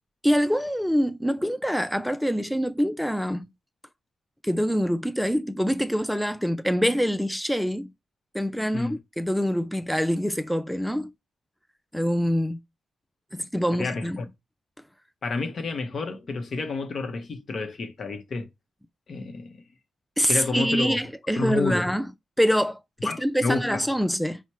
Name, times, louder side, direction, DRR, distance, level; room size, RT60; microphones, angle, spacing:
voice 1, 0.2-3.5 4.4-7.9 8.3-8.9 9.2-11.1 11.9-12.6 13.3-14.2 20.2-22.1 22.4-24.4, equal, ahead, 0.3 m, -25 dB
voice 2, 13.7-14.3 15.2-18.5 19.1-19.6 20.3-21.0 21.4-21.9 23.0-23.8, left 3 dB, 55° left, 0.8 m, -30 dB
4.3 x 2.1 x 4.4 m
supercardioid pair, 60°, 0 cm